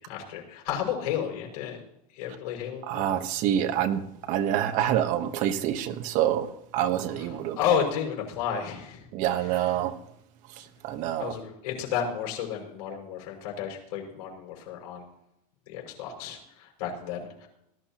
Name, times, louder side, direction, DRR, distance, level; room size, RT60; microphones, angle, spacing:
voice 1, 0.1-1.8 2.2-3.0 7.6-9.1 11.2-15.0 15.7-17.5, left 8 dB, 75° left, 5.9 m, -32 dB
voice 2, 2.8-7.6 9.1-10.0 10.5-11.3, right 11 dB, 40° right, 1.2 m, -27 dB
19.0 x 12.0 x 2.9 m
supercardioid pair, 165°, 19 cm